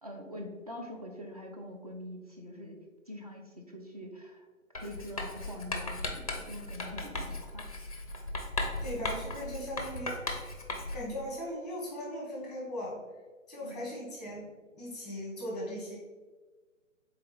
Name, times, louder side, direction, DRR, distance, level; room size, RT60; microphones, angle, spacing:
voice 1, 0.0-2.8 3.1-4.5 4.8-7.8 13.6-14.0, left 1 dB, 30° right, 1 dB, 0.4 m, -44 dB
Writing, 4.7-11.1, left 2 dB, 30° left, 0.4 m, -37 dB
voice 2, 8.8-10.2 10.9-13.0 13.5-14.5 14.7-16.0, equal, ahead, -4 dB, 1.0 m, -38 dB
3.7 x 3.4 x 4.1 m, 1.3 s
figure-of-eight pair, 145°, 40 cm